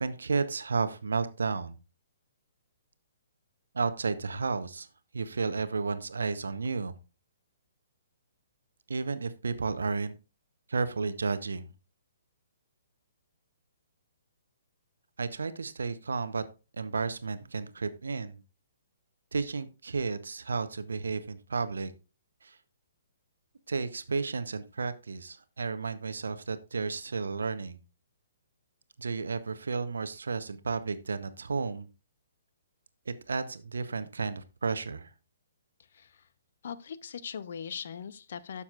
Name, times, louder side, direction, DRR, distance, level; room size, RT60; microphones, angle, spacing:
voice 1, 0.0-1.7 3.7-4.9 5.1-7.0 8.9-10.2 10.7-11.7 15.2-16.4 16.7-18.4 19.3-21.9 22.4-22.6 23.7-27.8 29.0-31.9 33.1-35.1, right 4 dB, 65° right, 0.8 m, -32 dB
voice 2, 35.9-36.3 36.6-38.6, left 7 dB, 55° left, 0.6 m, -40 dB
11.5 x 7.0 x 2.4 m
figure-of-eight pair, 125°, 0 cm